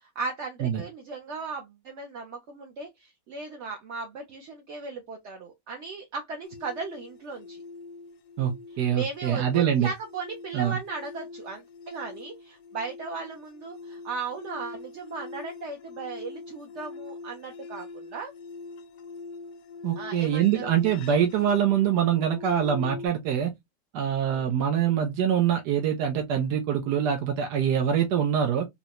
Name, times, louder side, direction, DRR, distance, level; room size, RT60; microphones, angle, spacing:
voice 1, 0.0-7.6 8.9-18.3 20.0-20.7 24.3-24.5, right 4 dB, 60° right, 0.8 m, -37 dB
sound 1, 6.4-23.1, left 3 dB, 70° left, 0.9 m, -43 dB
voice 2, 8.8-9.9 10.5-10.8 19.8-23.5 23.9-28.7, right 9 dB, 85° right, 1.3 m, -24 dB
3.9 x 2.1 x 2.8 m
omnidirectional pair, 1.8 m